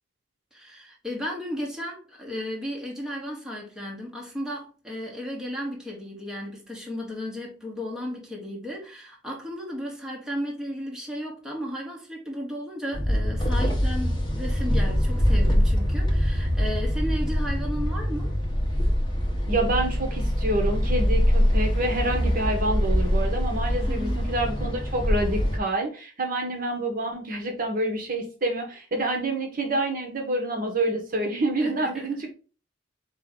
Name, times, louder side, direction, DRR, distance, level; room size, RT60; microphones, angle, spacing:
voice 1, 0.5-18.3 23.9-24.2 31.6-32.2, equal, 5° right, 1.2 m, -34 dB
sound 1, 12.9-25.6, equal, 25° left, 0.9 m, -24 dB
voice 2, 19.5-32.3, right 1 dB, 50° right, 1.1 m, -27 dB
4.6 x 3.0 x 3.7 m
head